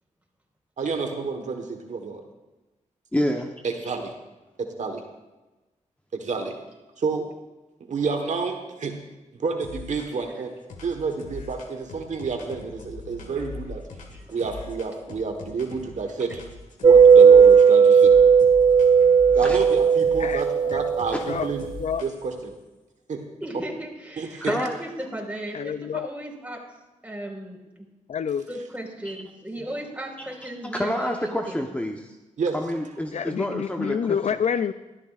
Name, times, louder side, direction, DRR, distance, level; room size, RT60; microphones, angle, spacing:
voice 1, 0.8-2.2 3.6-4.1 4.8-5.0 6.1-6.5 7.0-7.3 7.8-9.0 9.4-10.5 10.8-13.8 14.3-16.4 16.8-18.1 19.3-21.7 22.0-22.5 23.1-23.2 24.2-24.5 32.4-32.8, right 4 dB, 70° right, 4 dB, 1.3 m, -29 dB
voice 2, 3.1-3.5 19.4-19.6 24.5-24.8 29.1-29.2 30.8-32.1 32.5-34.2, equal, 10° left, 2 dB, 1.0 m, -28 dB
sound 1, 9.6-10.3 10.7-16.0 16.3-17.7 18.0-22.4, left 3 dB, 85° left, 1.7 m, -41 dB
sound 2, 16.8-21.2, right 6 dB, 40° right, 0.4 m, -15 dB
voice 3, 20.2-20.9 21.2-21.5 21.8-22.0 25.5-26.1 28.1-28.5 33.1-34.7, left 7 dB, 60° left, 13 dB, 0.4 m, -28 dB
voice 4, 23.4-26.6 27.0-27.9 28.5-31.6, right 1 dB, 10° right, -1 dB, 4.6 m, -36 dB
19.5 x 13.0 x 2.5 m, 1.1 s
cardioid pair, 60°, 13 cm